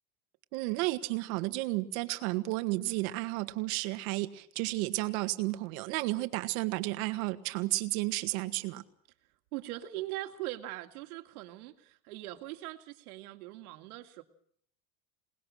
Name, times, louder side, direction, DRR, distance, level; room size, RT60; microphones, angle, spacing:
voice 1, 0.5-8.8, right 20 dB, 75° right, 10 dB, 1.9 m, -32 dB
voice 2, 9.5-14.2, right 16 dB, 90° right, 6 dB, 2.3 m, -41 dB
27.5 x 19.5 x 6.4 m, 0.65 s
cardioid pair, 155°, 43 cm